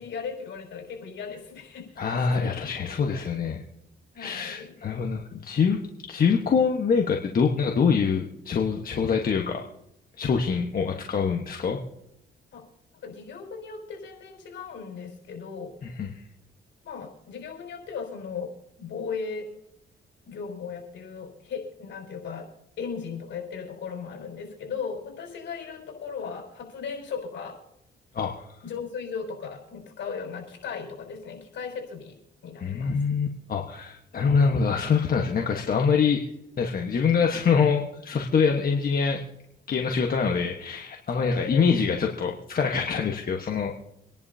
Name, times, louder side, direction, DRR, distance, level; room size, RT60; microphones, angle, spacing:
voice 1, 0.0-3.5 4.1-4.7 12.5-12.7 13.0-15.7 16.8-18.5 18.8-19.5 20.3-22.5 22.8-27.6 28.6-32.1 32.4-33.0 41.2-41.9, left 5 dB, 70° left, 1 dB, 5.3 m, -37 dB
voice 2, 2.0-3.6 4.2-5.8 6.1-9.7 10.2-11.8 15.8-16.1 28.1-28.4 32.6-36.2 36.6-39.2 39.7-43.7, left 6 dB, 45° left, 1 dB, 1.3 m, -24 dB
26.0 x 11.0 x 2.8 m, 0.81 s
cardioid pair, 90°, 20 cm